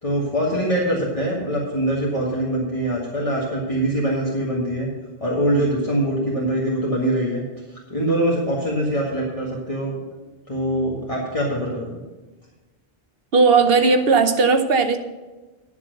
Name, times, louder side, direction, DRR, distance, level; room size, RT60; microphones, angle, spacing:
voice 1, 0.0-4.9 5.2-7.4 7.9-9.9 10.5-11.9, right 1 dB, 30° left, -5 dB, 1.8 m, -23 dB
voice 2, 13.3-15.0, right 4 dB, 65° right, 7 dB, 1.2 m, -16 dB
10.5 x 7.1 x 6.6 m, 1.2 s
omnidirectional pair, 1.1 m